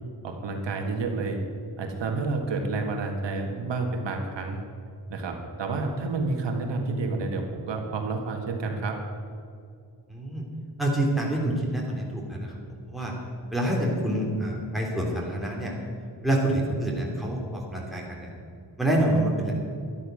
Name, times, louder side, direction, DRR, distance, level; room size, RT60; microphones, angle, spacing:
voice 1, 0.2-1.4 1.8-4.6 5.1-9.0, right 3 dB, 75° right, 3 dB, 1.8 m, -29 dB
voice 2, 10.1-10.4 10.8-12.5 12.9-13.1 13.5-15.7 16.2-18.3 18.8-19.5, right 1 dB, ahead, -3 dB, 3.3 m, -27 dB
12.5 x 12.0 x 6.4 m, 2.3 s
wide cardioid pair, 135°, 43 cm